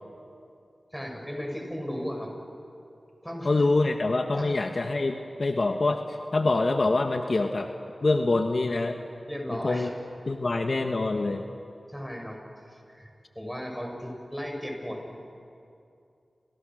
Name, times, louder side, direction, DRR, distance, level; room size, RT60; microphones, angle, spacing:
voice 1, 0.9-2.3 2.7-2.8 3.2-3.5 4.3-4.6 9.3-9.9 11.9-12.4 12.7-13.1 13.4-15.2, equal, ahead, 1 dB, 7.3 m, -36 dB
voice 2, 3.4-7.7 8.0-9.0 9.6-9.9 10.3-11.5, left 2 dB, 60° left, 5 dB, 1.5 m, -25 dB
29.5 x 27.5 x 6.5 m, 2.6 s
cardioid pair, 45°, 0 cm